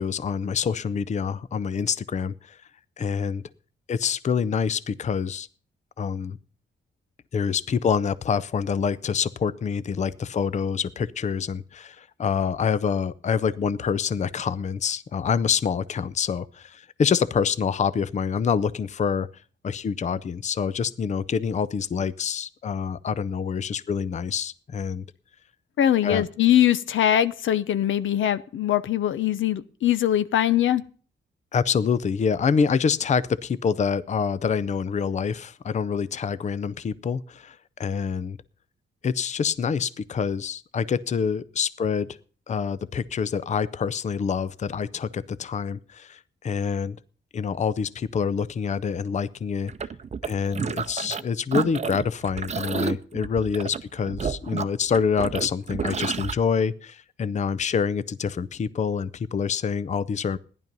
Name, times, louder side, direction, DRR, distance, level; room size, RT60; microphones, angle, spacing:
voice 1, 0.0-2.6 3.0-3.4 3.9-5.5 6.0-6.4 7.3-19.3 19.6-25.0 26.0-26.2 31.5-38.4 39.0-42.1 42.5-47.0 47.3-49.7 50.2-60.4, left 6 dB, 35° left, 0.5 m, -26 dB
voice 2, 25.8-30.8, left 11 dB, 85° left, 0.8 m, -22 dB
sound 1, 49.7-51.2 51.5-56.3, right 6 dB, 35° right, 0.6 m, -30 dB
15.0 x 10.5 x 5.3 m
wide cardioid pair, 125°, 20 cm